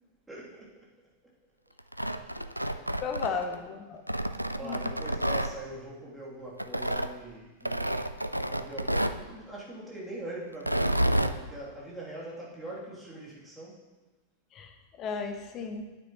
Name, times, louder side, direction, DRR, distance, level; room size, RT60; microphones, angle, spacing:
voice 1, 0.3-0.7 4.5-13.8, right 1 dB, 10° right, -6 dB, 2.9 m, -42 dB
Tearing, 1.8-3.6 4.1-5.5 6.6-7.1 7.6-9.2 10.5-11.4, right 1 dB, 90° right, 0.3 m, -29 dB
voice 2, 2.1-2.5 3.0-4.0 4.6-4.8 14.5-15.8, left 5 dB, 35° left, 5 dB, 1.1 m, -35 dB
9.7 x 9.0 x 3.0 m, 1.2 s
figure-of-eight pair, 90°, 0 cm